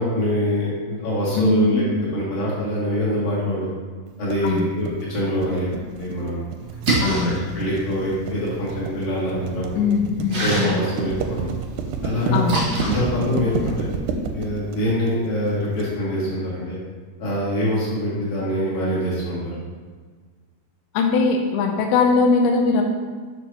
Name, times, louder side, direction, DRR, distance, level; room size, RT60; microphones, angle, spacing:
voice 1, 0.0-1.8 2.1-3.7 4.2-5.7 6.0-6.4 6.9-9.9 10.4-11.5 12.0-13.8 14.3-16.8 17.2-19.4, left 1 dB, 55° left, -8 dB, 3.8 m, -24 dB
voice 2, 1.4-1.8 4.4-4.6 7.0-7.4 9.8-10.8 12.3-12.6 20.9-22.8, left 4 dB, 85° left, 3 dB, 2.2 m, -20 dB
sound 1, 4.3-15.9, right 4 dB, 85° right, 2.5 m, -30 dB
Splash splatter, 6.6-14.0, right 2 dB, 55° right, 1.1 m, -29 dB
8.6 x 6.5 x 2.9 m, 1.5 s
omnidirectional pair, 5.0 m